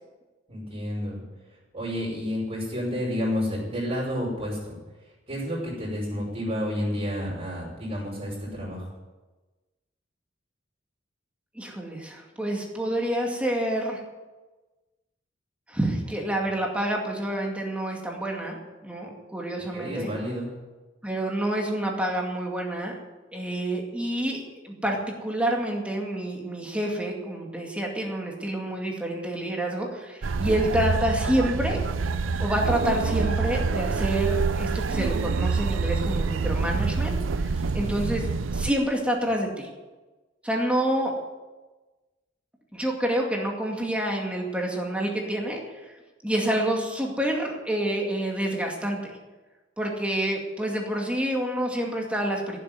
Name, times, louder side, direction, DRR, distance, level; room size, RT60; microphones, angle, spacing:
voice 1, 0.5-1.2 1.7-4.8 5.3-8.9 19.7-20.5 37.7-38.1, equal, 35° right, -4 dB, 5.6 m, -30 dB
voice 2, 11.6-14.0 15.7-18.6 18.8-20.1 21.0-22.9 23.3-31.9 32.4-38.3 38.5-39.7 40.4-41.1 42.7-45.9 46.2-49.2 49.8-52.6, right 1 dB, 5° right, 0 dB, 2.3 m, -28 dB
sound 1, 30.2-38.7, right 4 dB, 80° right, 0.6 m, -26 dB
15.5 x 7.7 x 9.6 m, 1.2 s
head